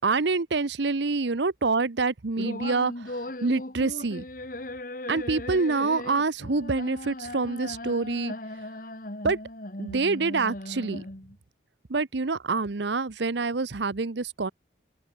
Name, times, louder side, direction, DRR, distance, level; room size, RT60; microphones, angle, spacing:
voice 1, 0.0-4.3 5.1-8.3 9.2-9.4 9.8-11.1 11.9-14.5, right 4 dB, 70° right, 0.8 m, -26 dB
sound 1, 2.4-11.4, left 1 dB, 45° left, 2.3 m, -38 dB
open air
head